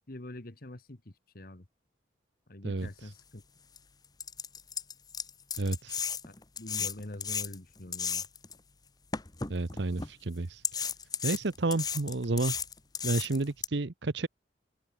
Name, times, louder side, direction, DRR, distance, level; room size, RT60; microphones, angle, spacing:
voice 1, 0.0-1.6 2.5-3.4 6.2-8.2, left 1 dB, 50° left, 1.6 m, -45 dB
voice 2, 2.6-3.1 5.6-6.0 9.5-10.6 11.2-12.6 13.0-14.3, right 2 dB, 65° right, 0.9 m, -31 dB
sound 1, 3.2-3.3 3.8-3.9 4.2-8.5 9.1-10.1 10.6-13.7, left 6 dB, 20° left, 1.0 m, -34 dB
head